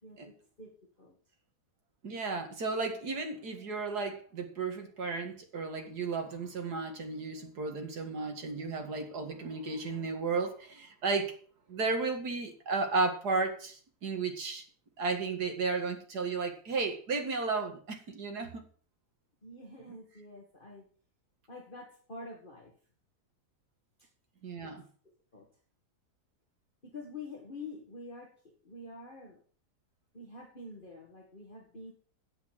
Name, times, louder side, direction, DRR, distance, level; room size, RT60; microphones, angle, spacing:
voice 1, 0.0-1.2 19.4-20.8 21.5-22.7 24.0-24.1 24.6-24.7 25.3-25.5 26.8-29.4 30.1-31.9, left 2 dB, 30° left, -1 dB, 2.1 m, -47 dB
voice 2, 2.0-11.3 11.7-14.6 15.0-18.6 24.4-24.8, right 4 dB, 85° right, 4 dB, 2.5 m, -34 dB
9.5 x 8.6 x 6.6 m, 0.43 s
omnidirectional pair, 1.7 m